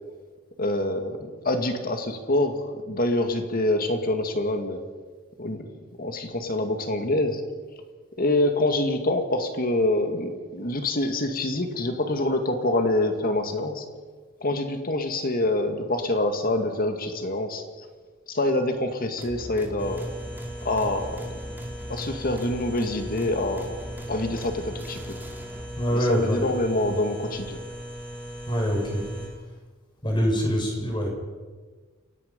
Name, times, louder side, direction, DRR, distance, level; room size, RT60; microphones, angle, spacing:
voice 1, 0.6-4.8 5.4-5.7 6.0-7.4 8.2-13.8 14.4-17.9 18.3-20.1 20.6-21.3 21.9-23.7 24.1-25.2 25.9-27.6, left 1 dB, 45° left, 5 dB, 2.3 m, -26 dB
sound 1, 19.2-25.9, equal, 10° right, 2.6 m, -40 dB
sound 2, 19.8-29.3, equal, 5° left, 7.0 m, -39 dB
voice 2, 25.8-26.5 26.8-27.0 28.5-29.1 30.0-31.1, equal, 25° left, 1 dB, 5.4 m, -25 dB
29.0 x 17.0 x 5.5 m, 1.4 s
head